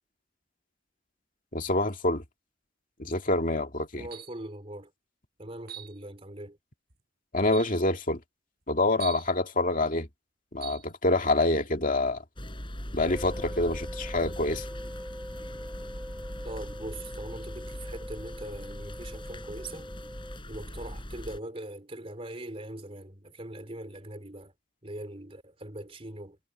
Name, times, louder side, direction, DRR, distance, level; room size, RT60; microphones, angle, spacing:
voice 1, 1.5-2.2 3.0-4.1 7.3-8.2 8.7-10.1 10.5-12.2 12.9-14.7, left 2 dB, 45° left, 2.4 m, -26 dB
voice 2, 4.0-4.9 5.4-6.6 16.4-19.9 20.5-24.5 24.8-26.4, right 1 dB, 30° right, 4.0 m, -41 dB
sound 1, 4.1-4.5 5.7-6.0 6.9-7.0 7.5-7.8 9.0-9.3 10.6-10.9, right 10 dB, 55° right, 7.2 m, -42 dB
sound 2, 12.4-21.4, equal, 25° left, 7.8 m, -40 dB
sound 3, 13.0-20.4, equal, 5° right, 1.9 m, -43 dB
head